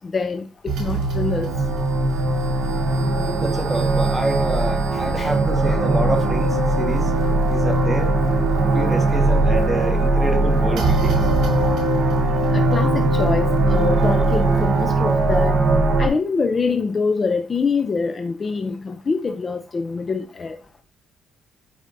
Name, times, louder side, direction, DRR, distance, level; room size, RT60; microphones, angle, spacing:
voice 1, 0.1-1.5 5.2-5.3 5.7-5.8 12.5-15.6 16.0-20.6, left 4 dB, 30° left, 0.5 m, -25 dB
sound 1, 0.7-16.1, right 2 dB, 65° right, 3.7 m, -19 dB
voice 2, 3.1-7.1 7.5-8.1 8.7-11.3, right 1 dB, 5° right, 1.5 m, -27 dB
12.0 x 4.9 x 2.7 m
cardioid pair, 130°, 0 cm